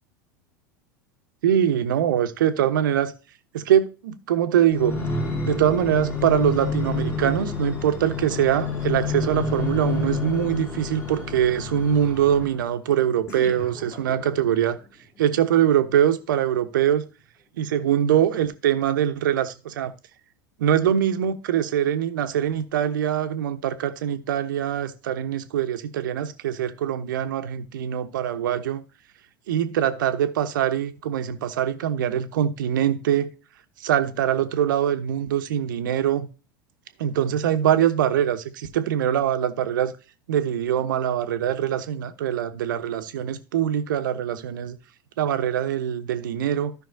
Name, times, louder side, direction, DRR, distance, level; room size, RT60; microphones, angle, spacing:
voice 1, 1.4-3.1 3.5-5.0 5.4-14.8 15.2-17.0 17.6-19.9 20.6-28.8 29.5-33.3 33.8-36.3 37.0-39.9 40.3-44.8 45.2-46.7, right 10 dB, 70° right, 1.0 m, -23 dB
sound 1, 4.7-12.7 13.3-14.6 15.2-15.3, left 3 dB, 25° left, 5.1 m, -29 dB
15.5 x 5.6 x 2.7 m
figure-of-eight pair, 80°, 11 cm